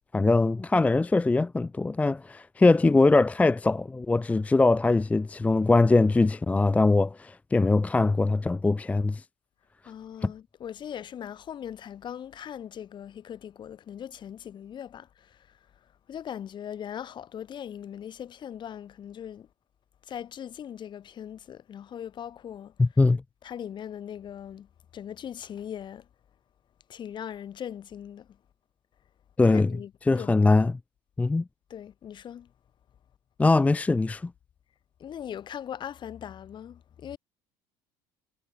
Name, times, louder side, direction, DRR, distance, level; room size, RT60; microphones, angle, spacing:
voice 1, 0.1-9.2 10.2-10.3 22.8-23.2 29.4-29.7 30.1-30.8 31.2-31.4 33.4-34.3, left 3 dB, 15° left, 0.5 m, -22 dB
voice 2, 9.8-19.5 20.0-22.7 23.4-24.7 24.9-26.1 26.9-28.4 29.4-30.3 31.7-32.5 35.0-37.2, left 9 dB, 45° left, 3.0 m, -40 dB
supercardioid pair, 90°, 11 cm